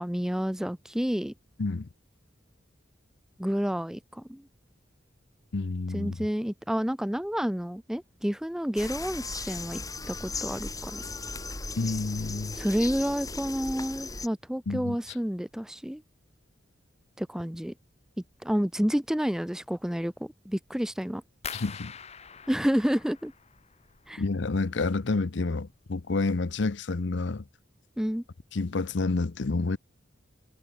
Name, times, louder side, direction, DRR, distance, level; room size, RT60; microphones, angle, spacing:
voice 1, 0.0-1.3 3.4-4.4 5.9-9.8 10.1-11.0 12.5-16.0 17.2-17.7 18.4-21.2 22.5-23.3 24.1-24.2 28.0-28.2, equal, 5° right, 0.4 m, -29 dB
voice 2, 5.5-6.3 11.8-12.6 14.7-15.0 21.5-21.9 24.2-27.4 28.5-29.8, left 3 dB, 65° left, 0.7 m, -29 dB
sound 1, 8.8-14.3, left 3 dB, 20° left, 4.8 m, -37 dB
sound 2, 21.4-24.3 24.6-25.3 25.7-26.1 26.5-26.6, left 7 dB, 35° left, 1.4 m, -44 dB
head